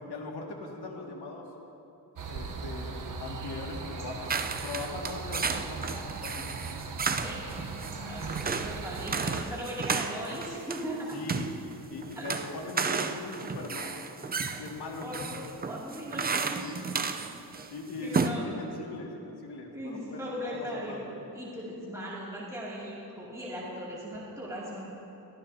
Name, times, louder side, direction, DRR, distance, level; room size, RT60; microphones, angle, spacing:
voice 1, 0.1-1.4 2.3-4.3 4.6-6.5 11.1-11.5 11.9-14.0 14.6-15.3 16.6-16.8 17.7-21.0, left 3 dB, 70° left, -1 dB, 2.2 m, -40 dB
sound 1, 2.2-9.4, right 4 dB, 50° right, 1.0 m, -39 dB
sound 2, 4.3-17.7 18.0-18.3, right 5 dB, 25° right, 0.5 m, -33 dB
voice 2, 7.8-11.2 12.1-12.4 15.0-16.6 18.0-18.5 19.7-21.1 21.3-24.9, equal, 10° right, -8 dB, 2.5 m, -38 dB
22.5 x 15.0 x 2.8 m, 2.9 s
wide cardioid pair, 140°, 41 cm